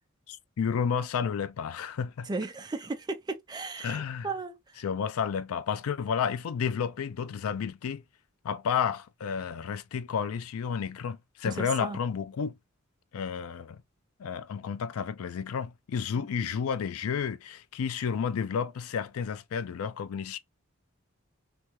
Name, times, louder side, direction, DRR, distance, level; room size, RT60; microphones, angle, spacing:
voice 1, 0.3-2.3 3.8-4.3 4.8-8.0 8.4-12.6 13.1-13.8 14.2-20.4, left 7 dB, 80° left, 0.4 m, -31 dB
voice 2, 2.2-4.8 11.4-12.0 16.1-16.5, right 3 dB, 20° right, 0.4 m, -36 dB
3.3 x 2.7 x 2.9 m
head